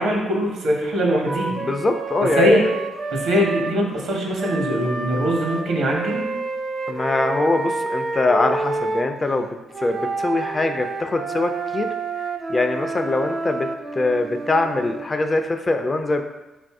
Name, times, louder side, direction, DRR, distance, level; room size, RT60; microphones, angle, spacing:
voice 1, 0.0-1.6 2.4-2.6 3.1-6.3, equal, 80° right, -1 dB, 1.0 m, -21 dB
Wind instrument woodwind instrument, 1.3-3.8 4.4-9.1 9.7-15.1, right 3 dB, 40° right, 0.4 m, -29 dB
voice 2, 1.6-2.5 6.9-9.5 9.8-11.9 12.5-13.7 14.0-16.2, left 2 dB, 25° left, 6 dB, 0.4 m, -22 dB
4.0 x 2.6 x 4.6 m, 1.1 s
cardioid pair, 95°, 0 cm